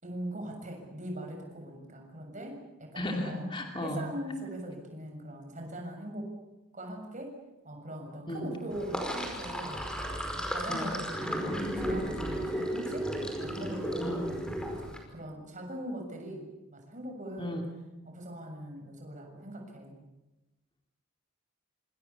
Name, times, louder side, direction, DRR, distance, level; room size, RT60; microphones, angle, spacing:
voice 1, 0.0-3.5 3.8-6.3 6.7-7.4 7.6-9.8 10.3-13.1 13.4-17.6 18.0-20.0, right 1 dB, 35° right, 3 dB, 7.1 m, -41 dB
voice 2, 3.0-4.0 8.3-8.6 10.7-11.0 14.0-14.3 17.4-17.6, left 1 dB, 20° left, 2 dB, 2.7 m, -34 dB
Sink (filling or washing), 8.7-15.0, equal, 5° left, 5.1 m, -34 dB
27.5 x 26.0 x 7.2 m, 1.0 s
head